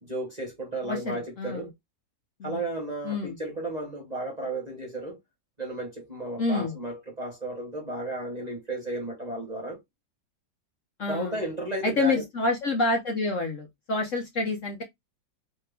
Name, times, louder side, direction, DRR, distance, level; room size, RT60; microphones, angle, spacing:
voice 1, 0.0-1.7 2.4-5.2 5.6-9.8 11.1-12.2, right 1 dB, 25° right, 1.0 m, -33 dB
voice 2, 0.8-1.7 2.4-2.6 3.0-3.4 6.4-6.7 11.0-11.4 11.8-14.8, left 3 dB, 50° left, 1.0 m, -28 dB
3.3 x 3.1 x 3.4 m
omnidirectional pair, 2.0 m